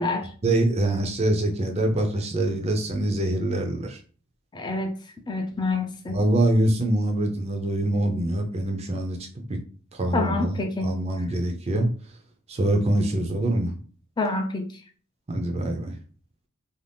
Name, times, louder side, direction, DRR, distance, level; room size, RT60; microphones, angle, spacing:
voice 1, 0.4-4.0 6.1-9.2 9.5-9.6 9.9-11.9 12.5-13.7 15.3-15.9, right 1 dB, 30° right, 4 dB, 0.5 m, -24 dB
voice 2, 4.5-5.0 5.3-6.2 10.1-11.0 14.2-14.7, left 3 dB, 20° left, 4 dB, 0.4 m, -27 dB
2.6 x 2.3 x 3.4 m, 0.41 s
head